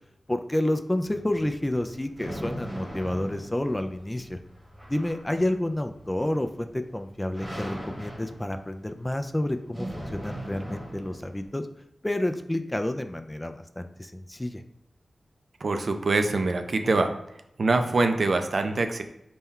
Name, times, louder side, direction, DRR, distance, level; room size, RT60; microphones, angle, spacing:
voice 1, 0.3-4.4 4.9-11.7 12.0-14.6, left 1 dB, 15° left, 8 dB, 0.3 m, -29 dB
sound 1, 1.0-11.5, equal, 10° right, 1.1 m, -40 dB
voice 2, 15.6-17.1 17.6-19.0, right 3 dB, 65° right, 6 dB, 0.4 m, -24 dB
4.1 x 2.2 x 3.6 m, 0.81 s
cardioid pair, 50°, 0 cm